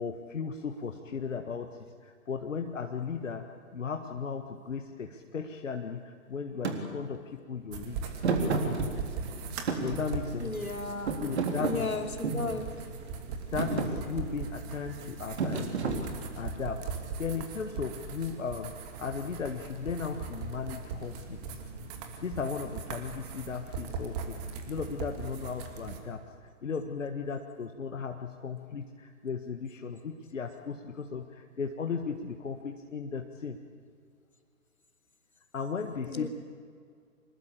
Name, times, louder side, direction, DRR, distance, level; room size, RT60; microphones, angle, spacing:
voice 1, 0.0-8.2 9.8-10.6 11.2-11.9 13.5-16.9 17.2-21.6 22.2-33.6 35.5-36.3, left 5 dB, 60° left, 5 dB, 1.7 m, -36 dB
Thump thud, 6.6-6.8 8.2-9.3 9.7-10.7 11.1-12.5 13.1-13.3 13.6-13.9 15.4-16.5, right 4 dB, 50° right, 3.7 m, -30 dB
sound 1, 7.7-26.0, right 5 dB, 30° right, 2.7 m, -40 dB
voice 2, 10.4-11.1 11.6-12.7 36.1-36.3, left 3 dB, 80° left, 5 dB, 3.0 m, -34 dB
25.5 x 21.0 x 8.5 m, 2.1 s
figure-of-eight pair, 130°, 43 cm